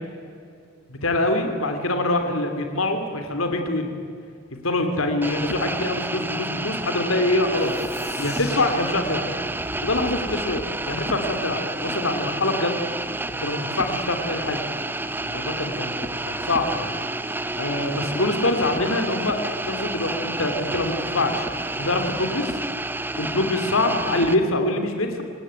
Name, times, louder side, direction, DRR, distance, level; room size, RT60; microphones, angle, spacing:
voice 1, 0.9-3.9 4.5-7.8 8.2-9.2 9.8-12.8 13.4-14.6 15.2-16.9 17.6-21.5 21.8-22.6 23.2-25.2, left 2 dB, 80° left, 6 dB, 3.0 m, -24 dB
sound 1, 5.2-24.4, right 2 dB, 10° right, 0.9 m, -30 dB
sound 2, 7.6-12.1, left 3 dB, 50° left, 2.5 m, -43 dB
27.5 x 19.0 x 9.1 m, 2.3 s
head